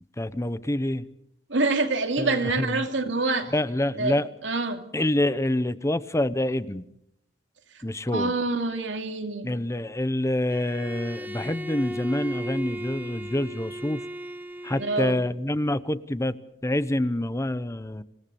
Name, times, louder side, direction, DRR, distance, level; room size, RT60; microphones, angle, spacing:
voice 1, 0.2-1.0 2.2-2.8 3.5-4.2 4.9-6.8 7.8-8.3 9.4-14.0 14.6-16.3 16.6-18.0, left 1 dB, 15° left, 14 dB, 0.9 m, -26 dB
voice 2, 1.5-3.5 4.0-4.8 8.1-9.5 14.7-15.2, right 3 dB, 85° right, 6 dB, 2.5 m, -26 dB
Bowed string instrument, 10.5-15.3, equal, 10° right, 1.1 m, -37 dB
26.5 x 18.0 x 7.0 m, 0.75 s
head